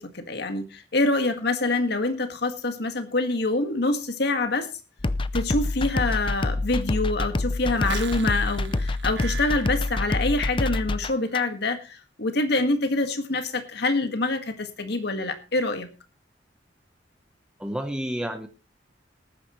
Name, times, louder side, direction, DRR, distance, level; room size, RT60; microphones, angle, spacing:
voice 1, 0.0-4.7 5.3-15.9, left 2 dB, 65° left, 7 dB, 1.9 m, -26 dB
sound 1, 5.0-11.4, left 2 dB, 30° left, 0.6 m, -27 dB
sound 2, 7.7-10.7 11.0-11.5, right 6 dB, 70° right, 1.5 m, -39 dB
voice 2, 17.6-18.5, equal, 5° right, 5 dB, 1.0 m, -30 dB
19.0 x 9.6 x 3.2 m, 0.31 s
head